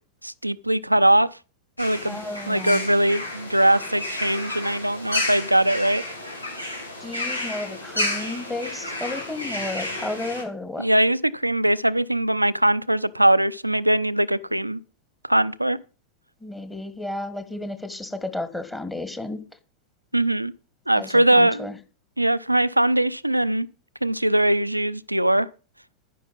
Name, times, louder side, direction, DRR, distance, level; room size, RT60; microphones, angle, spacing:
voice 1, 0.2-1.3 1.8-2.2 2.5-6.0 10.8-14.8 15.2-15.8 20.1-20.5 20.9-21.7 22.2-23.7 24.0-25.5, right 1 dB, 85° right, 0.5 m, -21 dB
sound 1, 1.8-10.4, left 1 dB, 85° left, 3.2 m, -31 dB
voice 2, 2.0-2.8 7.0-10.8 16.4-19.4 20.9-21.8, left 2 dB, 10° left, 1.6 m, -32 dB
10.0 x 10.0 x 5.5 m
figure-of-eight pair, 90°, 0 cm